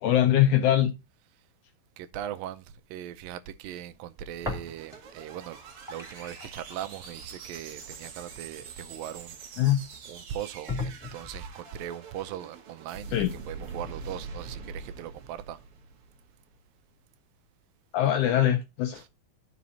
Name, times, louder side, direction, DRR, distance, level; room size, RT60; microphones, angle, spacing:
voice 1, 0.0-0.9 9.6-9.8 13.1-13.3 17.9-19.1, left 11 dB, 75° left, 1.8 m, -22 dB
voice 2, 2.0-5.6 5.9-9.7 10.1-15.6 19.0-19.1, right 11 dB, 80° right, 2.2 m, -39 dB
sound 1, 4.3-16.5, right 4 dB, 55° right, 1.7 m, -44 dB
sound 2, 4.4-5.2 5.5-9.5 10.1-10.2 10.7-11.6, left 3 dB, ahead, 1.7 m, -39 dB
15.0 x 5.1 x 2.8 m
omnidirectional pair, 4.2 m